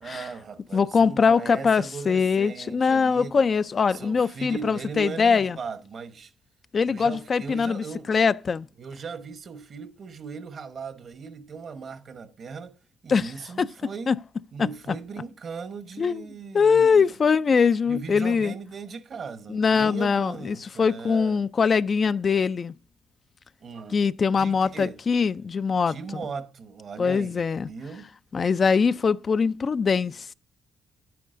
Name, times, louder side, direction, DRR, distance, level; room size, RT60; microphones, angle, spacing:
voice 1, 0.0-3.5 3.9-6.3 6.9-8.1 8.8-12.8 13.0-14.1 14.5-17.1 17.9-21.4 23.6-24.0 24.4-25.0 25.9-28.1, right 5 dB, 50° right, 1.0 m, -38 dB
voice 2, 0.7-5.6 6.7-8.7 13.1-13.3 13.6-13.7 14.1-14.2 14.6-14.7 16.0-16.2 16.5-18.5 19.5-22.7 23.9-26.0 27.0-27.7 28.3-30.3, left 5 dB, 40° left, 0.3 m, -22 dB
10.5 x 9.2 x 2.5 m
cardioid pair, 90°, 0 cm